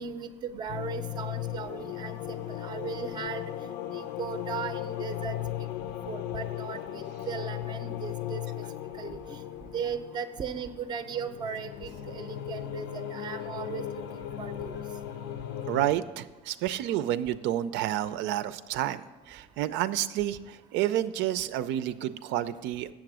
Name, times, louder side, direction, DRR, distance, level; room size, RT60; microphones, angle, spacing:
voice 1, 0.0-3.4 3.9-5.7 6.1-8.4 9.0-9.4 9.7-13.8 14.4-14.8, right 7 dB, 25° right, 10 dB, 0.5 m, -37 dB
sound 1, 0.7-15.9, left 11 dB, 85° left, 0.6 m, -37 dB
voice 2, 15.7-22.9, right 12 dB, 85° right, 13 dB, 0.5 m, -30 dB
7.8 x 7.2 x 6.1 m, 1.3 s
cardioid pair, 180°, 18 cm